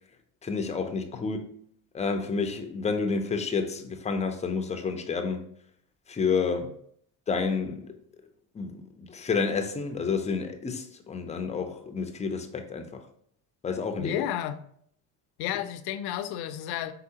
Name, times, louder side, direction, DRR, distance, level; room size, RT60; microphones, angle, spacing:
voice 1, 0.4-1.4 1.9-5.4 6.1-6.7 7.3-7.9 8.5-13.0 13.6-14.2, left 5 dB, 15° left, 0.5 m, -30 dB
voice 2, 14.0-14.6 15.4-16.9, left 11 dB, 60° left, 0.5 m, -32 dB
4.6 x 3.5 x 2.8 m
supercardioid pair, 100°, 43 cm